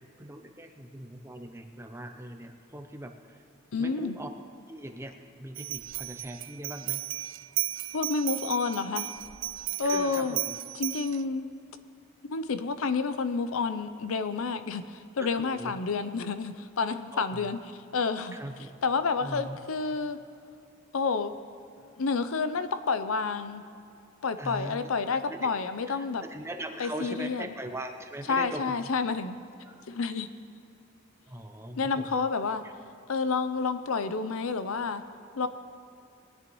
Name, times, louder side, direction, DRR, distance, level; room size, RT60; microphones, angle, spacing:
voice 1, 0.2-3.4 3.8-4.3 4.7-7.0 9.8-10.5 15.2-15.8 17.1-17.5 18.3-18.7 19.2-19.6 24.4-25.6 25.9-28.7 29.7-29.8 31.3-32.0, right 1 dB, 10° right, 5 dB, 0.6 m, -40 dB
voice 2, 3.7-4.2 7.9-9.1 9.8-10.4 10.7-11.5 12.2-17.6 17.9-18.4 18.8-20.2 20.9-21.3 22.0-23.6 24.2-26.2 26.8-27.5 28.3-29.4 29.9-30.3 31.8-32.6 33.1-35.0 35.4-35.5, left 4 dB, 85° left, 11 dB, 0.6 m, -29 dB
sound 1, 5.6-11.2, right 18 dB, 60° right, 0.3 m, -35 dB
20.5 x 9.8 x 3.1 m, 2.7 s
head